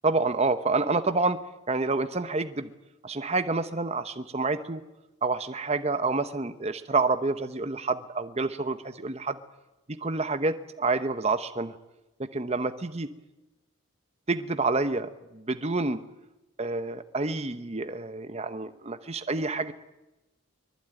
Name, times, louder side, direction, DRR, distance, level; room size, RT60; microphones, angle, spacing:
voice 1, 0.0-1.4 1.7-2.7 3.0-4.8 5.2-9.4 9.9-11.7 12.3-13.1 14.3-16.0 16.6-19.7, right 3 dB, 30° right, 10 dB, 0.8 m, -28 dB
24.0 x 20.0 x 9.0 m, 1.0 s
head